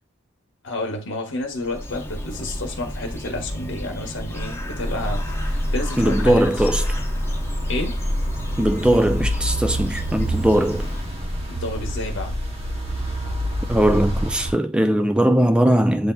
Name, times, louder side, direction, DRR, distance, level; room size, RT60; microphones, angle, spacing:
voice 1, 0.6-6.5 7.7-8.0 11.5-12.4, left 2 dB, 65° left, 1.1 m, -30 dB
Bird, 1.4-11.4, equal, 15° left, 0.8 m, -33 dB
sound 1, 4.8-14.5, equal, 30° right, 0.8 m, -27 dB
voice 2, 6.0-6.8 8.6-10.9 13.7-16.1, right 1 dB, 5° right, 0.3 m, -19 dB
8.2 x 2.8 x 2.2 m
head